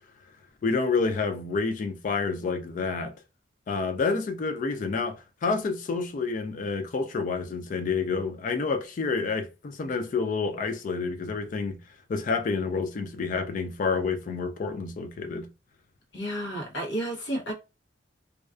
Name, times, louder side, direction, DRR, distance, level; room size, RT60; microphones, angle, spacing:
voice 1, 0.6-3.1 3.7-11.8 12.1-15.5, left 4 dB, 45° left, 0.3 m, -29 dB
voice 2, 16.1-17.5, right 1 dB, 70° left, 0.9 m, -31 dB
2.3 x 2.2 x 2.3 m
head